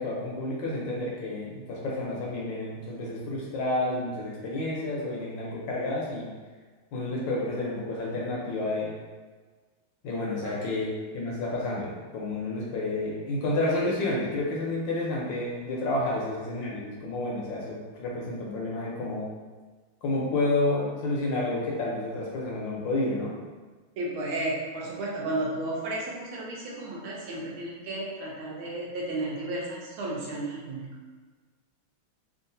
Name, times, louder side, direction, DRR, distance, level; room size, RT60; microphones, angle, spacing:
voice 1, 0.0-6.3 6.9-9.0 10.0-19.3 20.0-23.3, left 2 dB, 70° left, -4 dB, 1.3 m, -30 dB
voice 2, 24.0-30.9, right 2 dB, 80° right, -3 dB, 1.5 m, -33 dB
3.7 x 2.4 x 2.6 m, 1.4 s
omnidirectional pair, 2.3 m